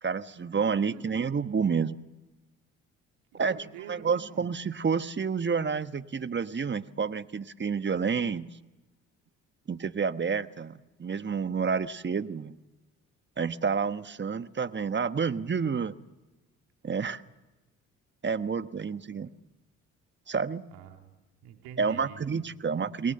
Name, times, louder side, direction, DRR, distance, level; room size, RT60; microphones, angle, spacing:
voice 1, 0.0-2.0 3.3-3.6 3.9-8.5 9.7-12.6 13.4-15.9 16.8-17.2 18.2-19.3 20.3-20.6 21.8-23.1, right 5 dB, 30° right, 12 dB, 1.3 m, -29 dB
voice 2, 0.6-1.0 3.3-4.5 19.2-19.3 20.7-21.1 21.4-22.7, right 9 dB, 80° right, 4 dB, 2.7 m, -47 dB
28.5 x 21.5 x 6.7 m, 1.1 s
hypercardioid pair, 55°, 37 cm